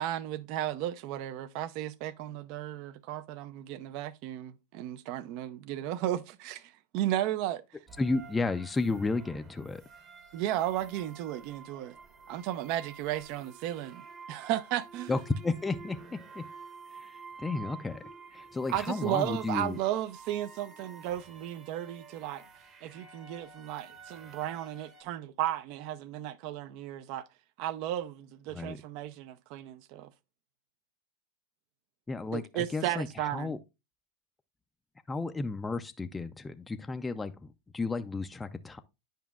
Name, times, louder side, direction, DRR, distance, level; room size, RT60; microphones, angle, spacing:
voice 1, 0.0-6.6 6.9-7.6 10.3-11.9 12.3-14.0 14.3-15.1 18.7-22.4 22.8-27.2 27.6-30.1 32.3-33.5, right 13 dB, 55° right, 0.5 m, -34 dB
sound 1, 7.9-25.0, right 4 dB, 35° right, 1.1 m, -50 dB
voice 2, 8.0-9.8 15.1-16.4 16.9-18.0 18.3-19.8 28.5-28.8 32.1-33.6 35.1-38.8, left 3 dB, 15° left, 0.4 m, -33 dB
9.2 x 5.0 x 2.3 m
hypercardioid pair, 115°, 0 cm